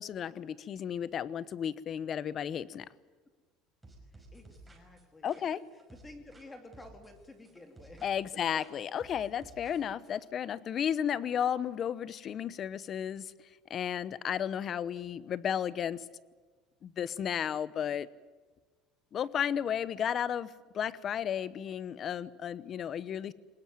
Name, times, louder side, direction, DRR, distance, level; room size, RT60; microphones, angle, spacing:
voice 1, 0.0-2.9 5.2-5.6 8.0-13.3 13.7-16.0 16.8-18.1 19.1-20.5 20.7-23.3, left 9 dB, 30° left, 18 dB, 0.8 m, -33 dB
sound 1, 3.8-6.5 6.7-8.3 8.6-10.2, right 2 dB, 5° right, 5.4 m, -55 dB
voice 2, 4.1-8.0, left 2 dB, 10° left, 6 dB, 2.6 m, -52 dB
23.5 x 20.5 x 9.3 m, 1.4 s
cardioid pair, 165°, 0 cm